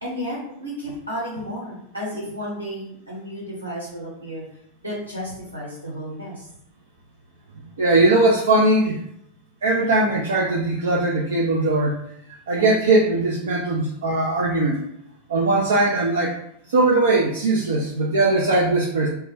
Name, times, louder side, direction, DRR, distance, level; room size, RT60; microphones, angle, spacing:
voice 1, 0.0-4.4 4.8-6.5, equal, 85° right, -6 dB, 1.1 m, -32 dB
voice 2, 7.8-9.0 9.6-12.0 12.5-14.8 15.3-16.4 16.7-19.1, right 2 dB, 65° right, -3 dB, 0.4 m, -20 dB
2.1 x 2.1 x 3.2 m, 0.74 s
figure-of-eight pair, 90°, 0 cm